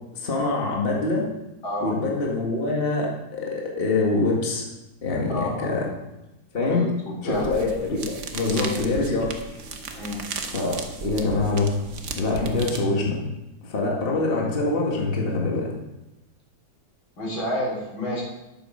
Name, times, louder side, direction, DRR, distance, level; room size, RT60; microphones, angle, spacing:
voice 1, 0.1-1.3 1.8-4.6 5.0-5.9 6.5-6.9 7.2-9.3 9.9-10.0 10.5-11.7 12.2-13.2 13.6-15.7, left 3 dB, 30° left, -2 dB, 1.9 m, -24 dB
voice 2, 1.6-1.9 5.3-5.9 6.7-6.9 7.2-7.5 8.5-8.8 10.0-10.2 17.2-18.2, left 1 dB, 80° left, -3 dB, 4.3 m, -29 dB
sound 1, 7.3-12.9, right 4 dB, 45° right, 1.1 m, -35 dB
11.5 x 8.7 x 5.0 m, 0.97 s
omnidirectional pair, 2.1 m